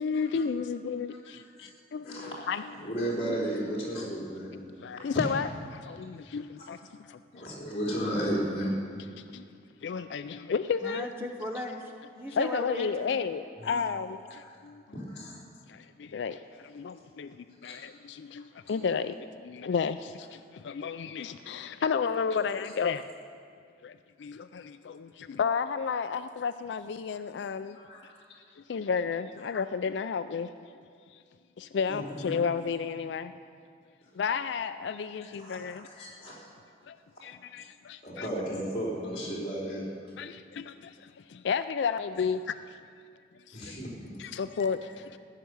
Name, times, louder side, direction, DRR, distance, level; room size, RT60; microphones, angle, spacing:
voice 1, 0.0-3.0 3.3-3.4 4.8-6.8 7.1-7.5 9.2-9.5 9.8-11.1 12.3-14.8 15.7-23.1 23.8-27.8 28.0-28.1 28.6-30.8 31.1-31.2 31.6-33.3 34.1-35.9 36.9-37.0 37.2-38.3 40.2-42.6 43.5-43.8 44.2-45.2, left 6 dB, 85° left, 11 dB, 0.4 m, -32 dB
voice 2, 2.0-2.6 2.8-4.5 6.0-6.1 7.3-8.7 13.6-13.8 14.4-14.6 14.9-15.4 17.6-17.7 27.7-28.2 31.9-32.0 32.3-32.4 35.4-36.4 38.0-39.9 43.5-44.1, right 1 dB, 35° left, -4 dB, 3.7 m, -34 dB
voice 3, 10.8-13.2, equal, 15° right, 2 dB, 0.8 m, -37 dB
15.5 x 6.7 x 9.4 m, 2.2 s
head